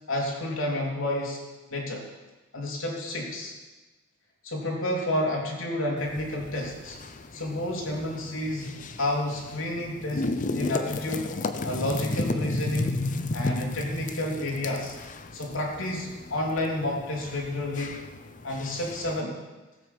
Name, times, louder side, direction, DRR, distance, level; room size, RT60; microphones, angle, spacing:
voice 1, 0.1-1.4 1.7-2.1 2.5-3.6 4.4-7.0 7.3-11.3 11.6-13.0 13.3-14.9 15.3-18.1 18.4-19.4, left 1 dB, 75° left, -1 dB, 3.3 m, -30 dB
sound 1, 6.0-19.2, left 2 dB, 40° left, 0.7 m, -34 dB
16.5 x 8.1 x 7.2 m, 1.2 s
head